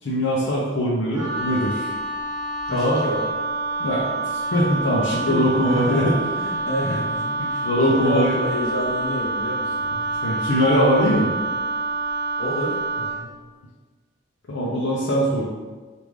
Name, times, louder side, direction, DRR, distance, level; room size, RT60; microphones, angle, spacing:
voice 1, 0.0-1.9 2.7-3.0 3.8-6.2 7.4-8.3 9.9-11.3 14.5-15.4, equal, 75° left, -6 dB, 0.5 m, -22 dB
Wind instrument woodwind instrument, 1.1-13.2, right 2 dB, 70° right, 1.0 m, -27 dB
voice 2, 2.7-3.3 5.1-10.1 12.4-13.3, equal, 90° left, -4 dB, 1.0 m, -29 dB
3.4 x 2.5 x 3.1 m, 1.3 s
head